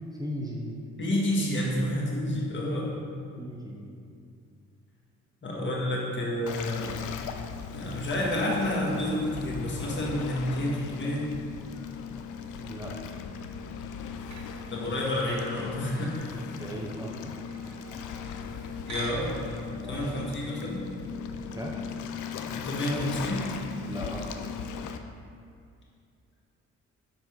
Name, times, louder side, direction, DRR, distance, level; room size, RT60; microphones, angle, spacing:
voice 1, 0.2-0.8 1.1-1.2 3.4-3.9 12.6-12.9 16.3-17.4 19.8-20.0 21.5-21.8 23.8-24.5, equal, 15° right, -3 dB, 0.7 m, -38 dB
voice 2, 1.0-2.9 5.4-7.0 7.7-11.3 14.7-16.3 18.9-19.4 19.7-20.8 22.5-23.4, left 1 dB, 40° left, -4 dB, 1.6 m, -29 dB
Waves surf, 6.5-25.0, left 6 dB, 80° left, 0.5 m, -38 dB
sound 1, 14.3-18.4 18.9-19.6 19.9-20.1, right 4 dB, 65° right, 1.0 m, -47 dB
7.2 x 3.9 x 4.5 m, 2.3 s
cardioid pair, 90°, 30 cm